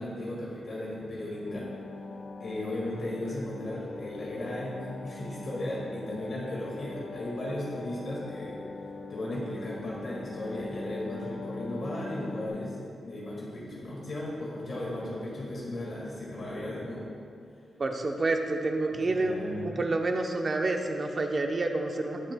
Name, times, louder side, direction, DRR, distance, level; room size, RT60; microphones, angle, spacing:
voice 1, 0.0-1.7 2.4-8.6 9.1-12.8 13.0-17.0 18.9-19.8, left 1 dB, 50° left, -5 dB, 1.7 m, -36 dB
sound 1, 1.5-12.5, left 3 dB, 65° left, 0.8 m, -42 dB
voice 2, 17.8-22.2, right 2 dB, 35° right, 3 dB, 0.7 m, -29 dB
18.0 x 6.3 x 2.2 m, 2.4 s
wide cardioid pair, 160°, 0 cm